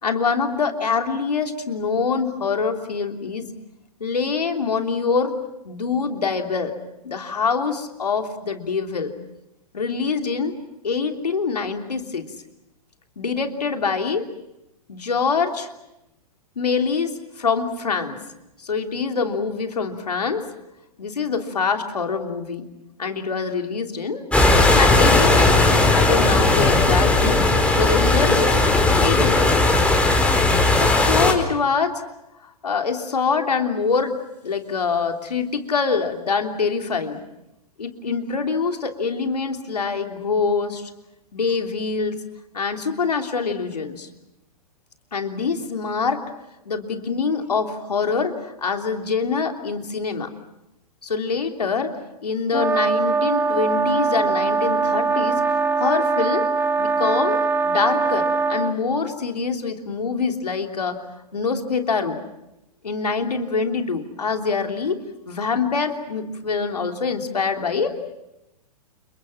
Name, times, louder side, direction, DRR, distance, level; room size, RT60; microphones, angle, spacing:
voice 1, 0.0-3.5 4.0-5.4 5.6-6.7 7.0-9.1 9.7-10.5 10.8-12.3 13.2-14.2 14.9-15.7 16.6-17.1 17.4-18.2 18.6-20.4 21.0-22.7 23.0-24.3 24.7-27.4 27.7-28.6 29.0-29.8 30.7-32.0 32.4-34.2 34.4-37.2 37.8-40.9 41.3-42.2 42.5-44.1 45.1-46.2 46.6-50.3 51.0-51.9 52.2-55.4 55.7-56.4 56.8-57.4 57.6-61.0 61.3-62.2 62.8-68.1, left 5 dB, 85° left, 4 dB, 3.2 m, -24 dB
sound 1, 24.3-31.3, left 2 dB, 5° left, 4.5 m, -17 dB
sound 2, 52.5-58.8, right 4 dB, 10° right, 1.5 m, -22 dB
30.0 x 28.5 x 5.9 m, 0.89 s
hypercardioid pair, 115°, 20 cm